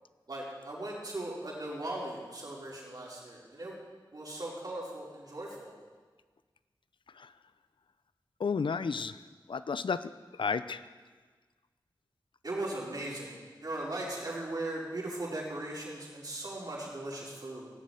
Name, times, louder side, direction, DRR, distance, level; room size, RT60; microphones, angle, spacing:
voice 1, 0.3-3.8 4.1-5.7 12.4-17.7, right 1 dB, 55° right, -5 dB, 5.0 m, -38 dB
voice 2, 8.4-9.2 9.5-10.8, left 5 dB, 85° left, 13 dB, 0.6 m, -32 dB
17.0 x 7.5 x 9.2 m, 1.4 s
wide cardioid pair, 75°, 8 cm